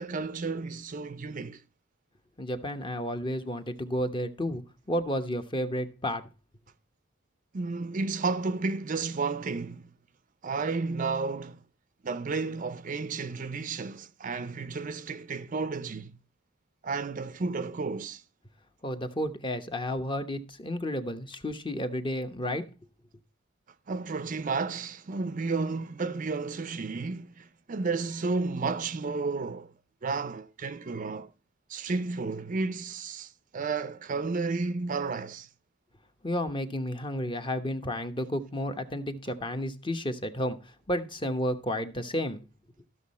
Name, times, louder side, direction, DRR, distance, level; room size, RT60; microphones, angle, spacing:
voice 1, 0.0-1.6 7.5-9.9 10.4-11.6 12.0-16.2 16.8-18.2 23.9-29.7 30.0-31.3 31.7-35.5, right 4 dB, 40° right, 0.5 m, -32 dB
voice 2, 2.4-4.6 4.9-6.2 18.8-22.6 36.2-42.4, left 1 dB, 25° left, 0.9 m, -32 dB
14.0 x 6.3 x 4.1 m
head